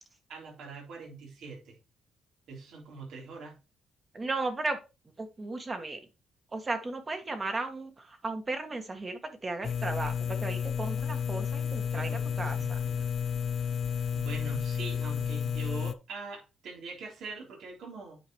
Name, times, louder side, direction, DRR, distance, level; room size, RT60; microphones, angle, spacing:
voice 1, 0.3-1.8 2.5-3.6 11.7-13.1 14.1-18.2, right 4 dB, 75° right, -1 dB, 3.5 m, -43 dB
voice 2, 4.1-4.8 5.2-6.0 6.5-7.9 8.2-12.1 12.4-12.8, right 2 dB, 30° right, 6 dB, 1.7 m, -35 dB
sound 1, 9.6-15.9, left 7 dB, 55° left, 0.6 m, -31 dB
9.3 x 5.0 x 3.1 m, 0.27 s
cardioid pair, 90°, 0 cm